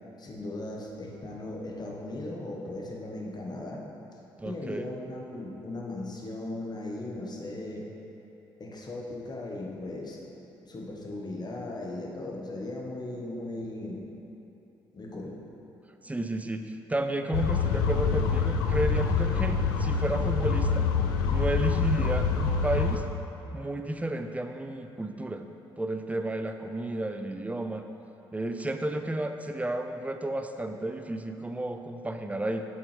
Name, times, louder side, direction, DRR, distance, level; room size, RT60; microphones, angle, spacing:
voice 1, 0.2-3.8 4.4-7.9 8.6-10.2 10.7-14.1 14.9-15.4, left 2 dB, 35° left, -1 dB, 1.4 m, -37 dB
voice 2, 4.4-4.9 16.0-20.9 21.3-23.0 23.5-25.4 25.8-27.8 28.3-32.6, right 1 dB, 10° right, 7 dB, 0.6 m, -32 dB
sound 1, 17.3-23.0, left 5 dB, 75° left, 0.5 m, -26 dB
7.9 x 7.7 x 3.4 m, 2.9 s
figure-of-eight pair, 45°, 12 cm